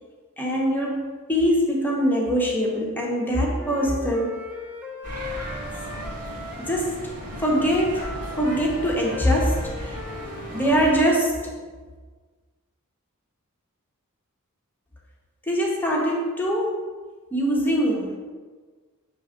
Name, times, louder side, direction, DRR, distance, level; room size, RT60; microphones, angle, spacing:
voice 1, 0.4-4.4 6.6-7.1 7.4-11.6 15.5-16.8 17.3-18.2, equal, 10° left, -3 dB, 1.0 m, -23 dB
Wind instrument woodwind instrument, 3.4-6.8 7.3-11.1, left 1 dB, 10° right, 0.7 m, -38 dB
sound 1, 5.0-11.0, left 1 dB, 90° right, 1.8 m, -36 dB
7.0 x 3.5 x 5.1 m, 1.4 s
head